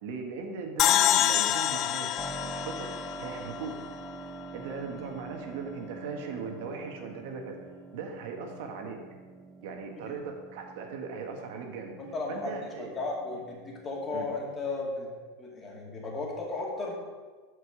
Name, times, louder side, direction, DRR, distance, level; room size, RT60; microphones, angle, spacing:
voice 1, 0.0-2.9 3.2-3.7 4.5-7.6 7.9-9.0 9.6-11.9 12.3-12.9 14.1-14.3, right 5 dB, 70° right, 3 dB, 1.4 m, -38 dB
sound 1, 0.8-4.1, left 12 dB, 40° left, 0.3 m, -27 dB
Keyboard (musical), 2.2-14.9, right 4 dB, 20° right, 0.8 m, -46 dB
voice 2, 12.0-15.1 15.4-16.9, left 3 dB, 20° left, -2 dB, 2.4 m, -35 dB
13.0 x 5.0 x 5.0 m, 1.4 s
supercardioid pair, 140°, 0 cm